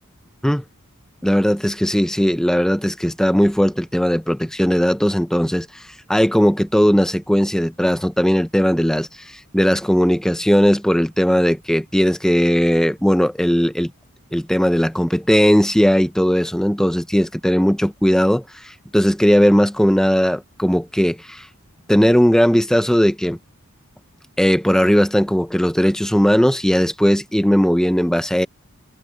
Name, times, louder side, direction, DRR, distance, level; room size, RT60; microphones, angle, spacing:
voice 1, 1.2-5.7 6.1-9.1 9.5-13.9 14.3-21.5 21.9-23.4 24.4-28.5, equal, 5° left, 0.7 m, -17 dB
head